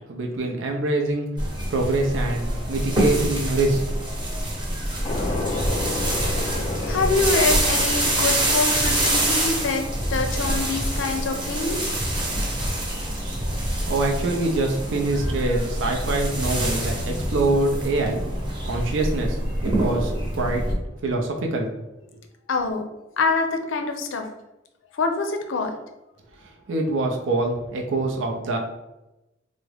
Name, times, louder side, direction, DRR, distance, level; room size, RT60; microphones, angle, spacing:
voice 1, 0.1-1.3 1.7-3.8 13.9-18.2 18.6-21.7 26.4-28.6, right 2 dB, 80° right, 2 dB, 0.5 m, -25 dB
sound 1, 1.4-20.7, right 1 dB, 25° right, 0.8 m, -26 dB
sound 2, 5.0-17.0, left 2 dB, 30° left, 0.4 m, -34 dB
voice 2, 6.2-9.8 10.1-11.9 22.5-22.8 23.2-24.3 24.9-25.7, left 3 dB, 90° left, 5 dB, 0.5 m, -25 dB
3.5 x 2.0 x 3.3 m, 0.96 s
head